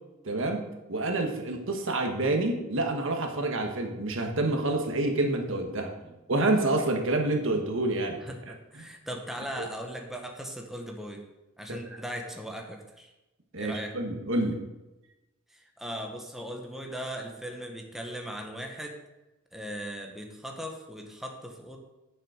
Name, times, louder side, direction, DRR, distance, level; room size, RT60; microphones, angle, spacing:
voice 1, 0.2-0.6 0.9-5.9 6.3-8.2 8.7-8.9 9.6-9.7 11.7-11.8 13.5-14.6, right 2 dB, 65° right, 3 dB, 1.4 m, -28 dB
voice 2, 8.2-11.3 11.6-13.1 13.6-14.0 15.5-19.0 19.5-21.8, equal, ahead, 2 dB, 1.1 m, -38 dB
9.2 x 7.2 x 4.9 m, 1.0 s
head